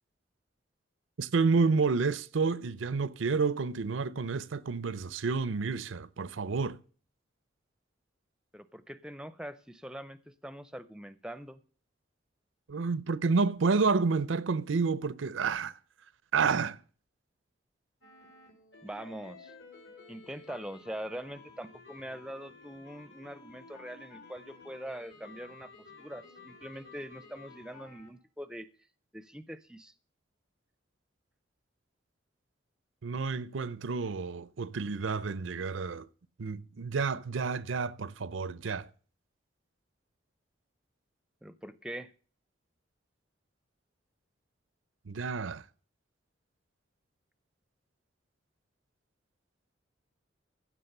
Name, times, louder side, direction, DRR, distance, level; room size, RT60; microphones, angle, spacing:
voice 1, 1.2-6.8 12.7-15.7 16.3-16.8 33.0-36.1 36.4-38.9 45.1-45.6, right 4 dB, 90° right, 0.6 m, -29 dB
voice 2, 8.5-11.6 18.8-19.5 20.1-25.7 26.0-28.7 29.1-29.9 41.4-42.1, right 1 dB, 5° right, 0.5 m, -43 dB
sound 1, 18.0-28.1, left 3 dB, 75° left, 4.0 m, -53 dB
15.0 x 6.0 x 6.6 m
head